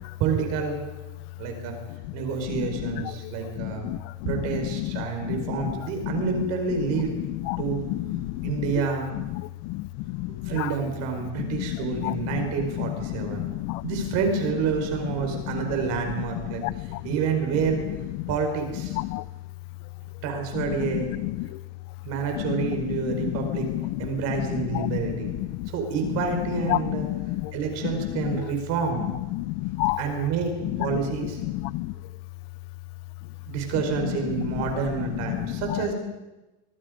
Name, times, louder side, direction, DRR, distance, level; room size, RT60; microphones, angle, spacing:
voice 1, 0.2-0.8 1.4-1.7 2.1-3.9 4.2-7.1 7.6-7.8 8.1-9.1 10.3-13.4 13.8-17.9 18.3-19.0 20.2-21.1 22.0-23.7 24.0-25.3 25.7-27.1 27.5-29.0 30.0-30.5 30.8-31.4 33.5-35.9, right 6 dB, 50° right, 4.9 m, -28 dB
voice 2, 2.5-2.9 3.6-4.3 4.8-4.9 5.3-5.4 7.5-7.6 7.9-8.5 9.7-9.9 10.2-10.7 11.5-11.6 12.0-12.2 12.8-12.9 13.3-13.8 16.6-16.7 19.0-19.2 21.4-21.5 23.7-23.8 24.7-25.0 25.6-25.7 26.7-27.5 29.3-30.0 31.6-31.9 35.3-35.4, left 20 dB, 55° left, 0.7 m, -29 dB
25.5 x 24.0 x 5.2 m
cardioid pair, 160°, 32 cm